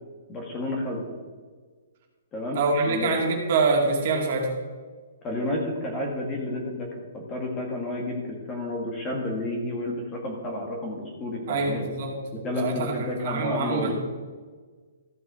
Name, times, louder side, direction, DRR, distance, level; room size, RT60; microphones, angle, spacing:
voice 1, 0.3-1.0 2.3-3.1 5.2-11.8 12.3-13.9, left 1 dB, 15° left, 0 dB, 1.5 m, -31 dB
voice 2, 2.5-4.5 11.5-12.2 12.6-13.9, right 3 dB, 40° right, 1 dB, 2.1 m, -25 dB
14.0 x 5.7 x 4.7 m, 1.5 s
hypercardioid pair, 165°, 0 cm